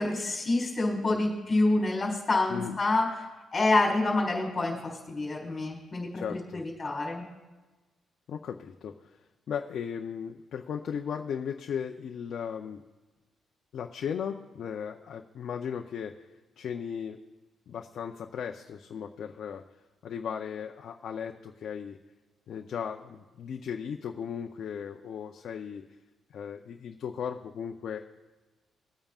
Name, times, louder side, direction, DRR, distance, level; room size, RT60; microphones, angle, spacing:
voice 1, 0.0-3.1 3.5-6.2 6.5-7.2, left 2 dB, 25° left, -1 dB, 4.0 m, -27 dB
voice 2, 6.1-6.6 8.3-12.8 13.7-17.2 17.7-19.6 20.0-22.0 22.5-25.8 26.3-28.0, left 7 dB, 65° left, 4 dB, 0.6 m, -36 dB
21.0 x 8.9 x 2.4 m, 1.2 s
cardioid pair, 110°, 0 cm